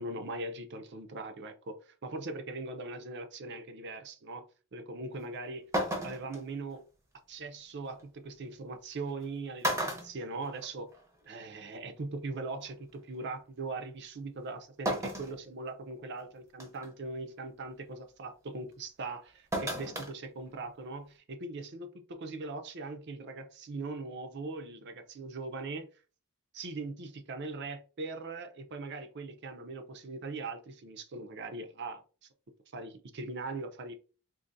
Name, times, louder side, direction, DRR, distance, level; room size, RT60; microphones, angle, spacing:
voice 1, 0.0-4.4 4.7-5.6 6.0-6.8 7.3-10.9 11.3-25.9 26.5-32.0 32.7-33.9, right 3 dB, 55° right, 0.6 m, -40 dB
sound 1, 5.2-5.3 5.7-6.4 8.0-8.1 9.1-9.2 9.6-11.0 11.3-11.4 12.7-12.8 14.9-15.4 15.9-16.0 16.6-16.9 19.5-20.1 20.5-20.6, equal, 15° right, 0.7 m, -33 dB
3.8 x 2.6 x 2.6 m
head